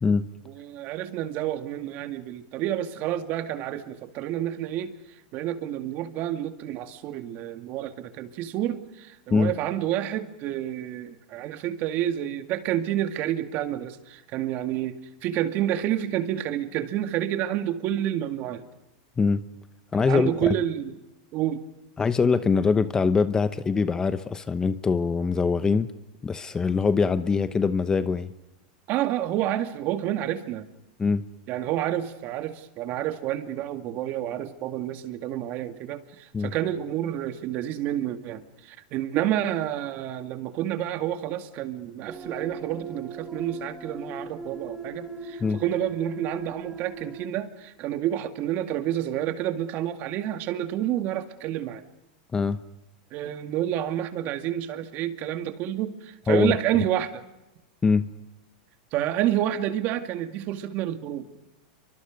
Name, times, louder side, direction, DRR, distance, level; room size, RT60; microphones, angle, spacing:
voice 1, 0.4-4.9 5.3-18.7 20.1-20.9 21.3-21.6 28.9-30.7 31.5-51.8 53.1-57.2 58.9-61.3, right 12 dB, 40° right, 8 dB, 2.2 m, -29 dB
voice 2, 19.9-20.5 22.0-25.9 26.2-28.3 31.0-31.2 36.3-36.5 45.4-45.6 52.3-52.6 56.3-56.6 57.8-58.1, left 5 dB, 15° left, 13 dB, 0.9 m, -23 dB
sound 1, 42.1-47.3, right 3 dB, 15° right, 1.3 m, -39 dB
29.5 x 24.0 x 5.2 m, 0.98 s
supercardioid pair, 140°, 5 cm